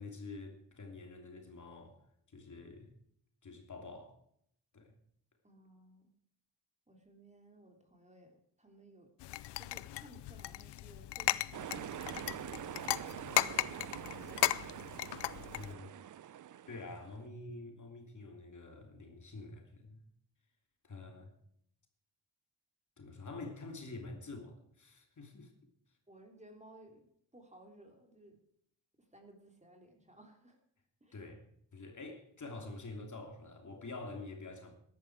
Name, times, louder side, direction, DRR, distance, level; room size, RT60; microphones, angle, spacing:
voice 1, 0.0-2.9 3.4-4.2 4.7-4.9 15.5-16.0 16.7-20.0 20.8-21.3 23.0-25.7 31.1-34.7, left 3 dB, 45° left, 3.0 m, -47 dB
voice 2, 5.4-6.0 6.9-9.1 9.6-13.3 26.1-27.1 27.3-28.4 29.0-30.6 31.0-31.2, right 1 dB, 15° right, 3.3 m, -59 dB
sound 1, 9.2-15.7, left 16 dB, 80° left, 0.6 m, -36 dB
sound 2, 11.5-17.2, right 11 dB, 50° right, 0.6 m, -45 dB
14.0 x 11.5 x 4.8 m
cardioid pair, 55°, 41 cm